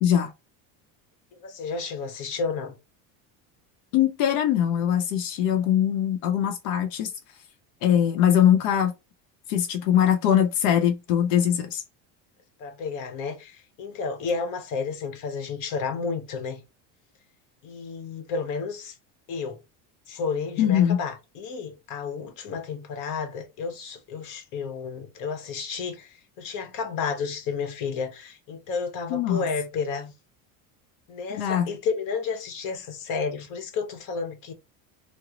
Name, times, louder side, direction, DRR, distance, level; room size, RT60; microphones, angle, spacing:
voice 1, 0.0-0.3 3.9-7.1 7.8-8.9 9.5-11.8 20.6-21.0 29.1-29.4 31.3-31.7, left 10 dB, 90° left, 0.6 m, -22 dB
voice 2, 1.4-2.7 12.6-16.6 17.6-19.0 19.3-19.6 20.1-30.1 31.1-34.5, left 5 dB, 55° left, 0.9 m, -31 dB
2.9 x 2.0 x 3.7 m
cardioid pair, 140°, 38 cm